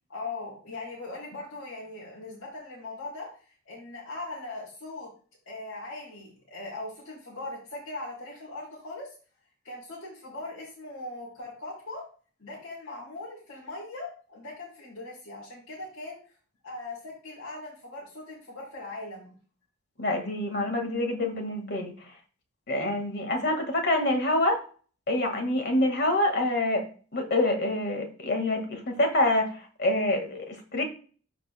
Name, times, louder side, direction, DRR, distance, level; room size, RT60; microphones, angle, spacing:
voice 1, 0.1-3.3 3.7-5.1 5.5-9.1 9.6-12.0 12.4-16.2 16.6-19.3, left 2 dB, 80° left, -7 dB, 3.5 m, -40 dB
voice 2, 20.0-21.9 22.7-24.6 25.1-26.8 27.1-30.8, left 1 dB, 50° left, 4 dB, 1.7 m, -26 dB
13.5 x 5.3 x 2.2 m, 0.39 s
head